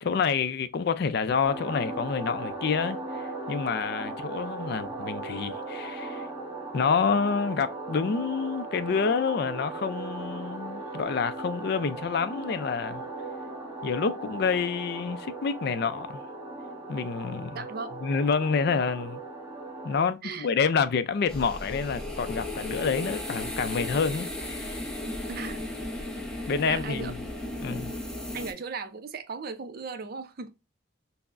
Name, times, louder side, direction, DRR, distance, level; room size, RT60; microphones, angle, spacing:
voice 1, 0.0-6.3 6.7-13.0 13.8-16.2 16.9-17.6 18.0-19.2 19.8-24.9 26.5-27.2 27.6-27.9, left 5 dB, 55° left, 0.4 m, -28 dB
sound 1, 1.4-20.0, right 2 dB, 15° right, 1.4 m, -38 dB
voice 2, 17.5-17.9 20.2-20.5 25.3-25.7 26.7-27.2 28.3-30.5, right 4 dB, 50° right, 0.5 m, -37 dB
sound 2, 21.3-28.5, left 1 dB, 5° left, 0.6 m, -35 dB
5.6 x 2.0 x 2.4 m
head